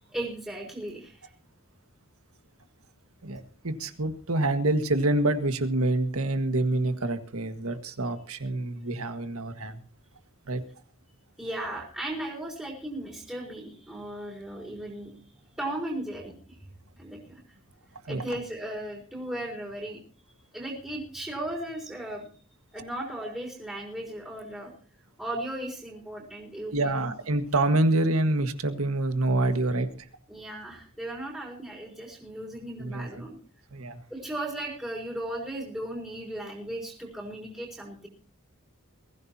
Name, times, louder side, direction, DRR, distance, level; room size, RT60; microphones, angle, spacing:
voice 1, 0.1-1.3 11.4-15.1 15.6-16.4 17.0-17.4 18.1-20.0 20.5-22.3 22.7-24.7 25.2-27.1 30.3-33.4 34.1-38.1, right 1 dB, 5° right, -2 dB, 3.9 m, -36 dB
voice 2, 3.2-9.8 10.5-10.6 18.1-18.2 26.7-29.9 32.8-33.2 33.7-34.0, right 2 dB, 90° right, 8 dB, 1.7 m, -27 dB
22.5 x 15.5 x 2.9 m, 0.40 s
head